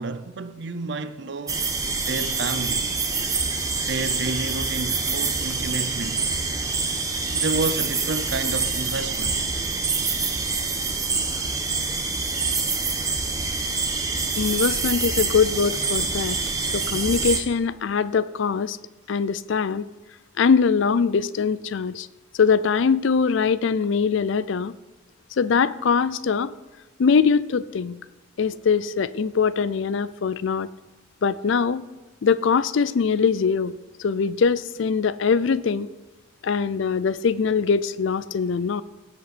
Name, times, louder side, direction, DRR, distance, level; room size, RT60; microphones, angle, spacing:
voice 1, 0.0-1.6 2.0-2.9 3.9-6.3 7.3-9.5, right 3 dB, 55° right, 0.6 m, -30 dB
sound 1, 1.5-17.4, right 4 dB, 15° right, 1.1 m, -26 dB
voice 2, 14.4-16.4 16.7-18.8 19.1-19.9 20.4-22.1 22.4-24.7 25.4-26.5 27.0-28.0 28.4-30.7 31.2-31.8 32.2-33.7 34.0-35.9 36.4-38.8, left 5 dB, 65° left, 0.4 m, -22 dB
16.5 x 8.2 x 4.2 m
head